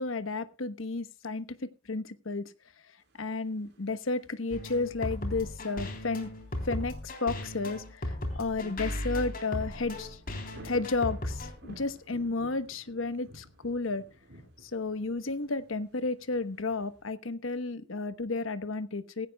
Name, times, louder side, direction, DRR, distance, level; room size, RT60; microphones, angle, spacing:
voice 1, 0.0-1.5 1.9-2.5 3.2-6.3 6.6-10.2 10.6-14.0 14.6-19.3, left 3 dB, 75° left, 12 dB, 1.1 m, -32 dB
sound 1, 3.0-17.0, right 1 dB, 60° right, 4.6 m, -55 dB
sound 2, 4.5-11.5, left 1 dB, 45° left, 3.5 m, -36 dB
18.0 x 16.0 x 2.3 m, 0.29 s
head